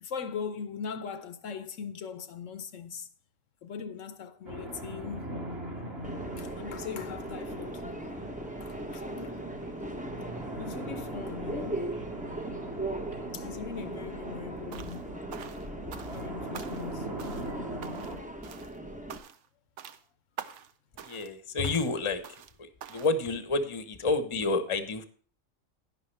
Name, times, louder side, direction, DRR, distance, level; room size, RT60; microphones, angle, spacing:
voice 1, 0.0-3.1 3.6-5.3 6.4-7.8 8.6-9.5 10.6-11.9 13.3-15.2 16.1-17.1 22.9-23.0, left 6 dB, 70° left, 1.0 m, -40 dB
sound 1, 4.4-18.2, right 1 dB, 50° right, 3.0 m, -41 dB
Subway metro underground, 6.0-19.2, right 1 dB, 10° right, 0.6 m, -39 dB
sound 2, 14.7-15.0 15.3-16.3 16.5-16.9 17.2-17.5 17.8-18.2 18.4-18.8 19.1-19.5 19.8-20.0 20.4-20.7 21.0-21.3 21.6-21.9 22.2-22.5 22.8-23.2, right 8 dB, 70° right, 1.0 m, -45 dB
voice 2, 21.0-22.2 22.6-25.0, left 3 dB, 25° left, 0.8 m, -29 dB
11.0 x 10.5 x 3.3 m
omnidirectional pair, 1.4 m